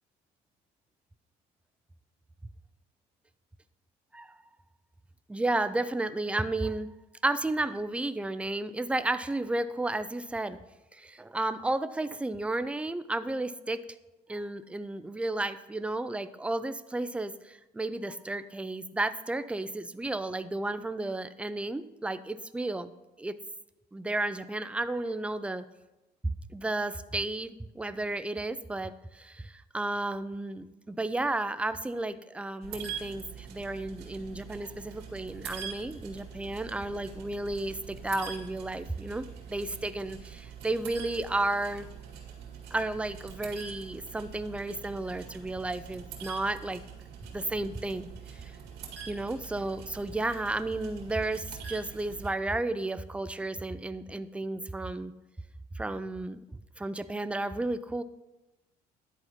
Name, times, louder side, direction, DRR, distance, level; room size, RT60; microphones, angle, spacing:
voice 1, 5.3-6.9 7.2-10.6 10.9-13.8 14.3-22.9 23.2-23.4 23.9-25.6 26.2-41.9 42.7-46.8 47.3-48.5 49.1-55.1 55.7-58.0, right 2 dB, 5° right, 13 dB, 0.4 m, -33 dB
sound 1, 32.6-52.3, right 7 dB, 85° right, 2.0 m, -44 dB
10.5 x 4.2 x 5.8 m, 1.0 s
cardioid pair, 110°, 17 cm